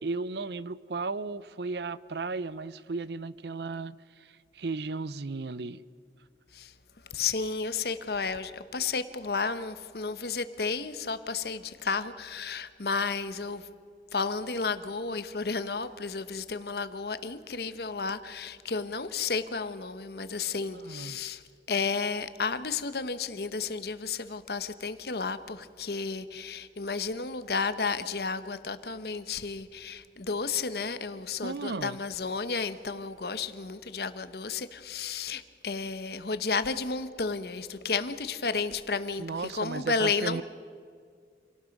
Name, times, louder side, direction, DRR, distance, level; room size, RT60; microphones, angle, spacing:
voice 1, 0.0-5.8 20.7-21.2 31.4-32.0 39.2-40.4, right 3 dB, 70° right, 17 dB, 0.6 m, -35 dB
voice 2, 7.1-13.7 14.1-21.4 21.7-40.4, left 4 dB, 60° left, 12 dB, 1.0 m, -32 dB
27.0 x 18.0 x 5.3 m, 2.1 s
head